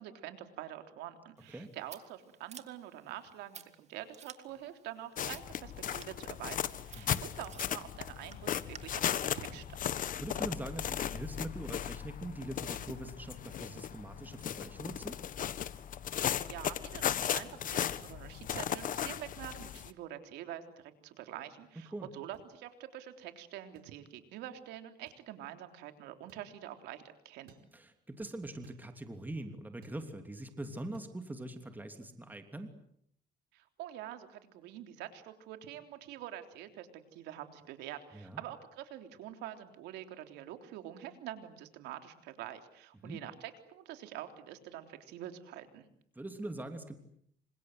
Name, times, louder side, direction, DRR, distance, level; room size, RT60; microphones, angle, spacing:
voice 1, 0.0-9.9 16.5-27.5 33.5-45.9, right 12 dB, 90° right, 7 dB, 3.5 m, -46 dB
Scissors, 1.4-8.8, right 7 dB, 40° right, 2.5 m, -55 dB
sound 1, 5.2-19.9, left 10 dB, 50° left, 1.5 m, -36 dB
voice 2, 10.2-15.2 21.9-22.1 27.7-32.7 38.1-38.4 43.0-43.2 46.1-47.0, right 1 dB, 10° right, 7 dB, 3.1 m, -43 dB
sound 2, 22.3-22.5 23.7-23.9 25.1-25.3 26.3-26.5 27.5-27.7 28.6-28.9 29.8-30.0 30.9-31.1, right 6 dB, 65° right, 4.8 m, -61 dB
28.0 x 26.5 x 8.0 m, 0.69 s
cardioid pair, 110°, 17 cm